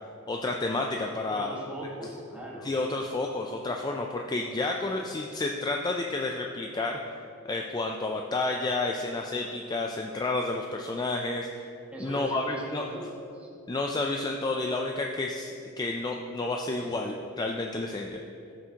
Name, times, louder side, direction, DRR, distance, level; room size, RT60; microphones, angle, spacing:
voice 1, 0.3-1.5 2.6-7.2 7.4-11.7 12.0-12.8 13.7-18.2, left 2 dB, 20° left, 1 dB, 0.3 m, -30 dB
voice 2, 1.3-2.7 11.9-13.5 16.8-16.9, right 1 dB, 5° right, -4 dB, 1.5 m, -39 dB
13.5 x 6.0 x 2.9 m, 2.6 s
head